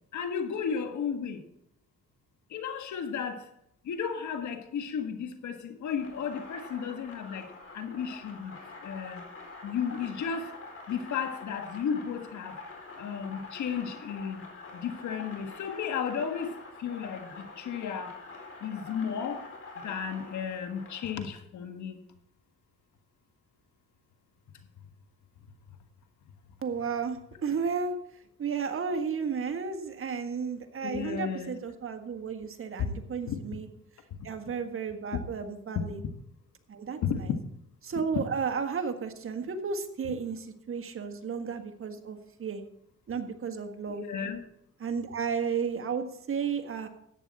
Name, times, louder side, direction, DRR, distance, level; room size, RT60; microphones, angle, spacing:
voice 1, 0.1-1.4 2.5-3.5 3.8-9.3 9.6-12.6 13.0-14.5 14.7-18.2 18.6-19.5 19.8-22.0 30.8-31.5 32.8-32.9 33.3-33.4 35.1-35.2 37.0-37.4 43.9-44.4, left 7 dB, 70° left, 1.6 m, -34 dB
sound 1, 6.0-21.2, left 3 dB, 50° left, 4.4 m, -46 dB
voice 2, 26.6-27.9 28.4-33.7 34.2-36.0 36.7-37.3 37.8-42.6 43.1-44.0 44.8-46.9, right 6 dB, 45° right, 1.6 m, -33 dB
14.0 x 9.2 x 4.2 m
cardioid pair, 90°, 30 cm